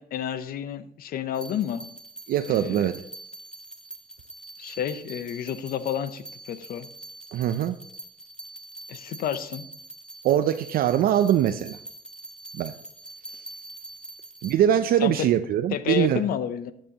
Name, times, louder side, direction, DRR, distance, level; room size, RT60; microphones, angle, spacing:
voice 1, 0.0-1.9 2.5-2.9 4.6-6.9 8.9-9.7 15.0-15.3 15.7-16.7, left 9 dB, 60° left, 13 dB, 0.7 m, -30 dB
sound 1, 1.3-14.5, right 2 dB, 5° left, 1.2 m, -44 dB
voice 2, 2.3-3.0 7.3-7.7 10.2-11.8 12.5-12.7 14.4-16.2, right 10 dB, 60° right, 9 dB, 0.5 m, -22 dB
12.0 x 7.4 x 2.9 m, 0.71 s
cardioid pair, 110°, 17 cm